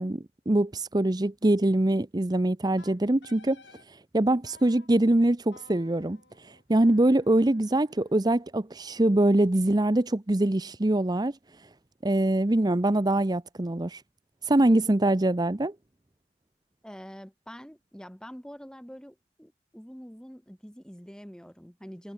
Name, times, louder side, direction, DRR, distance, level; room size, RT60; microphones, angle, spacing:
voice 1, 0.0-3.6 3.9-11.7 12.0-14.0 14.4-15.7, right 1 dB, 25° right, 0.7 m, -24 dB
Wind instrument woodwind instrument, 2.8-3.9 4.4-4.9 5.5-8.5, left 4 dB, 75° left, 5.5 m, -56 dB
voice 2, 16.8-22.1, equal, 5° left, 3.8 m, -45 dB
head